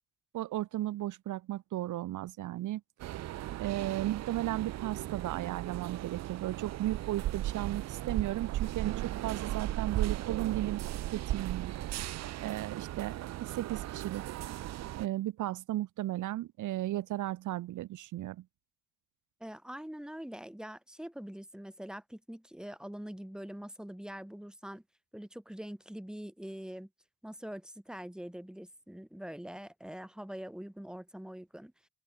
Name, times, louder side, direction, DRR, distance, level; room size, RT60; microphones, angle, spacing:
voice 1, 0.3-2.8 3.6-10.8 11.1-11.7 12.4-14.2 15.0-18.4, right 14 dB, 80° right, 1.4 m, -35 dB
sound 1, 3.0-15.1, right 14 dB, 60° right, 0.5 m, -36 dB
voice 2, 19.4-24.8 25.1-26.9 27.2-31.7, equal, ahead, 3.0 m, -44 dB
open air
cardioid pair, 90°, 30 cm